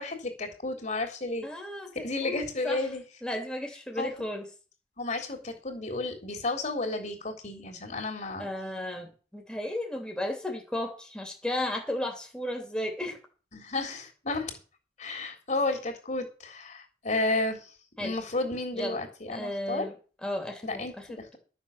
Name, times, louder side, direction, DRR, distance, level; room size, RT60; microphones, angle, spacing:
voice 1, 0.0-1.5 2.0-3.0 4.0-4.1 5.0-8.5 13.5-14.5 15.0-17.7 18.0-19.9 20.6-20.9, left 2 dB, 45° left, 3 dB, 3.6 m, -32 dB
voice 2, 1.4-2.8 3.2-4.5 8.4-13.2 18.0-18.1 18.7-19.0 19.3-19.9 20.2-21.4, left 1 dB, 5° left, 2 dB, 2.8 m, -34 dB
13.0 x 7.2 x 7.3 m, 0.36 s
head